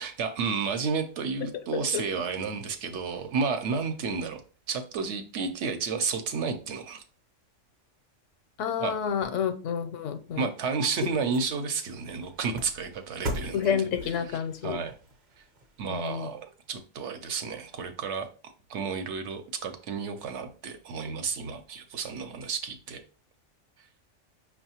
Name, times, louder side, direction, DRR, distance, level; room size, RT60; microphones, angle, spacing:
voice 1, 0.0-4.4 4.7-7.0 8.8-8.9 9.2-9.4 10.4-13.9 14.6-14.9 15.8-18.3 18.7-23.0, right 5 dB, 70° right, 0.9 m, -31 dB
voice 2, 8.6-10.5 13.5-14.8 15.9-16.3, left 8 dB, 80° left, 0.9 m, -29 dB
sound 1, 10.3-16.8 17.2-17.3, equal, 45° right, 0.7 m, -41 dB
5.4 x 2.3 x 2.8 m
omnidirectional pair, 1.3 m